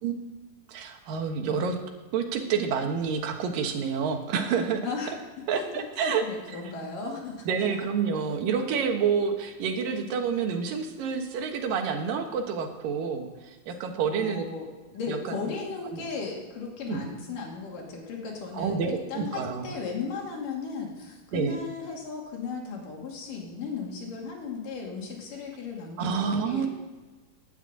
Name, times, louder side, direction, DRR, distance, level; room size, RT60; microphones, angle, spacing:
voice 1, 0.0-1.8 2.1-4.8 5.5-6.2 7.5-14.4 15.1-15.2 15.9-16.0 16.9-17.0 18.5-19.7 21.3-21.6 26.0-26.7, right 6 dB, 85° right, 4 dB, 3.1 m, -28 dB
voice 2, 4.8-5.1 5.5-7.5 14.1-26.7, left 5 dB, 75° left, -1 dB, 4.1 m, -36 dB
10.5 x 9.2 x 8.8 m, 1.3 s
omnidirectional pair, 3.9 m